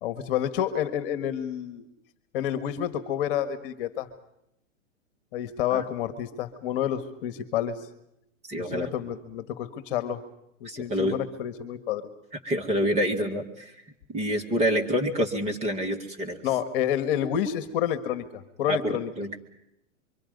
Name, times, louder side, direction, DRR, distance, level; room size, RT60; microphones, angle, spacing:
voice 1, 0.0-1.9 2.3-4.1 5.3-7.8 8.6-10.2 10.6-12.1 16.4-19.1, left 10 dB, 45° left, 11 dB, 1.7 m, -29 dB
voice 2, 8.5-8.9 10.6-11.2 12.4-13.7 14.1-16.4 18.7-19.4, equal, 15° right, 3 dB, 2.2 m, -27 dB
25.5 x 24.5 x 5.4 m, 0.81 s
hypercardioid pair, 140°, 39 cm